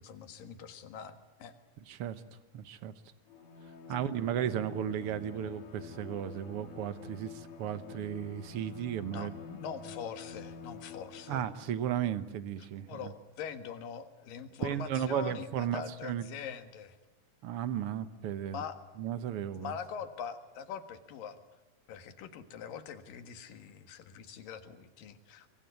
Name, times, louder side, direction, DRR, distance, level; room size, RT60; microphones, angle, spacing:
voice 1, 0.0-1.6 3.9-4.1 9.1-11.4 12.9-17.0 18.5-18.8 19.5-21.4 21.9-25.5, left 7 dB, 90° left, 9 dB, 3.4 m, -43 dB
voice 2, 1.9-2.2 2.5-2.9 3.9-9.3 11.3-13.1 14.6-16.2 17.4-18.6 19.0-19.7, right 10 dB, 65° right, 13 dB, 1.5 m, -35 dB
Bowed string instrument, 3.3-11.8, left 5 dB, 55° left, 2.9 m, -48 dB
25.5 x 24.0 x 9.4 m, 1.0 s
omnidirectional pair, 3.8 m